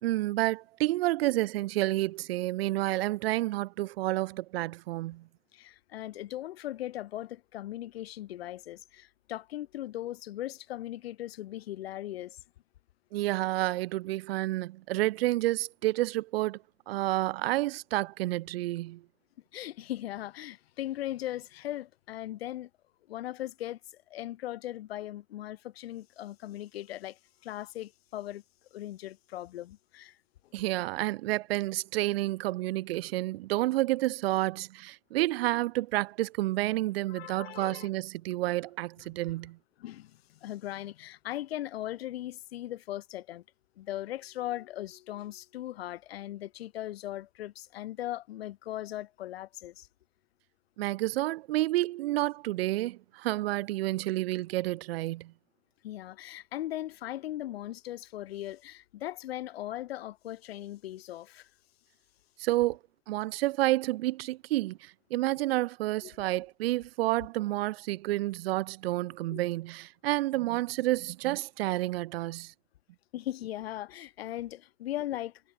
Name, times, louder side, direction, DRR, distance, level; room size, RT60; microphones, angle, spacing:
voice 1, 0.0-5.3 13.1-16.6 16.9-19.0 30.5-39.6 50.8-55.3 62.4-62.8 63.1-72.5, right 17 dB, 75° right, 5.1 m, -30 dB
voice 2, 5.5-12.4 19.5-22.7 23.1-28.4 28.7-30.2 30.4-30.5 37.1-37.9 39.8-43.4 43.8-49.9 55.8-61.5 66.0-66.4 69.3-69.4 73.1-75.4, left 14 dB, 80° left, 7.4 m, -39 dB
hypercardioid pair, 80°, 30 cm